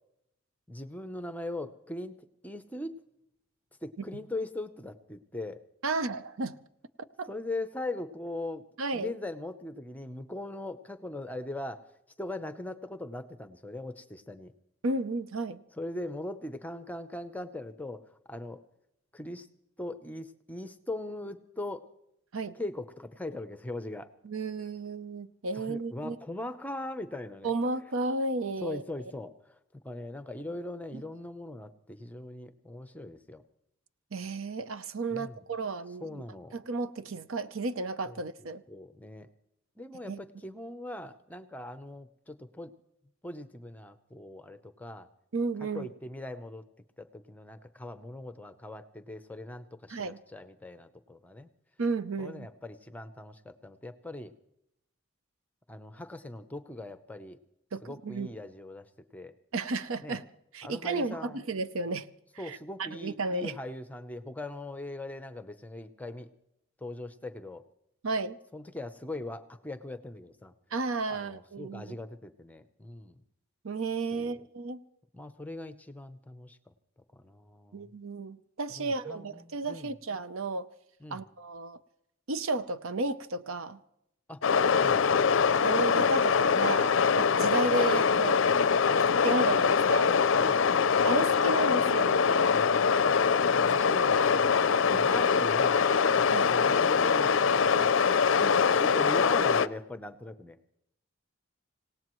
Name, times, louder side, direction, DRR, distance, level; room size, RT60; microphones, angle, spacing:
voice 1, 0.7-2.2 2.4-2.9 3.8-5.6 7.3-8.6 8.9-11.9 12.2-14.5 15.7-18.6 19.1-19.5 19.8-21.9 22.5-24.1 25.5-27.5 28.6-29.6 29.8-33.4 35.1-35.4 36.0-36.6 38.1-39.3 39.8-42.7 43.2-45.1 45.7-46.6 47.0-51.5 52.2-54.3 55.7-57.4 57.8-59.3 60.0-60.2 60.6-61.4 62.4-66.3 66.8-67.6 68.5-70.5 71.1-73.2 74.1-74.3 75.1-76.7 77.1-77.9 78.7-79.9 81.0-81.2 84.3-84.4 84.8-85.6 87.3-87.4 88.9-89.0 90.4-91.2 92.5-92.9 93.5-95.9 96.3-98.0 98.7-100.7, left 1 dB, 5° left, 10 dB, 0.6 m, -40 dB
voice 2, 5.8-6.6 7.0-7.3 8.8-9.1 14.8-15.6 22.3-22.6 24.2-26.2 27.4-28.8 30.9-31.0 34.1-36.2 36.5-38.6 40.1-40.2 45.3-45.9 49.9-50.2 51.8-52.5 57.7-58.3 59.5-60.2 60.5-62.1 62.4-63.5 68.0-68.4 70.7-72.0 73.6-74.8 77.7-80.7 81.1-81.8 82.3-83.8 84.8-85.0 85.6-88.4 89.2-90.2 91.0-92.5 93.6-93.7 94.9-95.1 96.3-96.5 98.4-98.6, right 3 dB, 75° right, 13 dB, 0.7 m, -33 dB
sound 1, 84.4-99.7, left 6 dB, 65° left, 0.5 m, -24 dB
26.5 x 18.0 x 3.1 m, 0.81 s
head